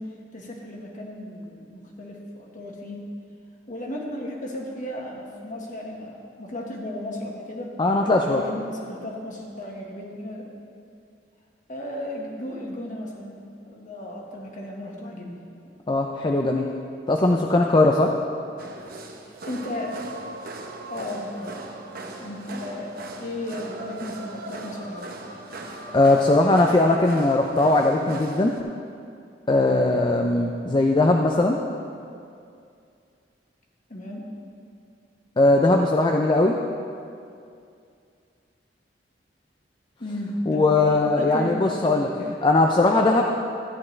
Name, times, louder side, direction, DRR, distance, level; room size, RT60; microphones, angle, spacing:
voice 1, 0.0-3.1 3.7-7.8 8.2-10.5 11.7-13.4 13.7-15.4 19.5-20.1 20.9-21.6 22.2-25.2 33.9-34.3 40.0-41.9, left 1 dB, 45° left, -1 dB, 1.6 m, -34 dB
voice 2, 7.8-8.4 15.9-16.7 17.1-18.1 25.9-28.5 29.5-31.6 35.4-36.5 40.5-43.2, left 2 dB, 25° left, 1 dB, 0.4 m, -19 dB
sound 1, 18.6-28.6, right 2 dB, 55° right, 0.9 m, -39 dB
14.5 x 9.5 x 3.2 m, 2.4 s
head